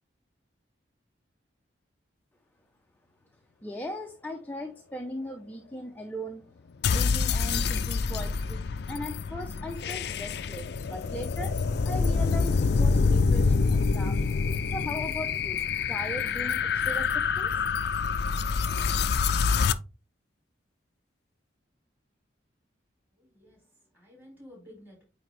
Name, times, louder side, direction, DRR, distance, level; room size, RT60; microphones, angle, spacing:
voice 1, 3.6-6.5 6.9-17.6, equal, 10° left, 0.5 m, -39 dB
sound 1, 6.8-19.7, left 5 dB, 55° left, 0.4 m, -26 dB
voice 2, 23.2-25.0, left 1 dB, 10° right, 4.0 m, -52 dB
8.9 x 3.5 x 3.3 m
head